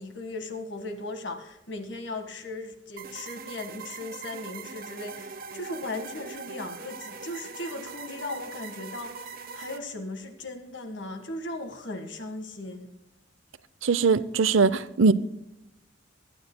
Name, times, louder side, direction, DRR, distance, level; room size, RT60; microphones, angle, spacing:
voice 1, 0.0-9.3 9.5-12.9, left 2 dB, 65° left, 1.7 m, -37 dB
sound 1, 3.0-9.8, right 5 dB, 50° right, 1.1 m, -41 dB
voice 2, 13.8-15.1, right 4 dB, 85° right, 0.6 m, -21 dB
22.0 x 9.5 x 2.2 m
head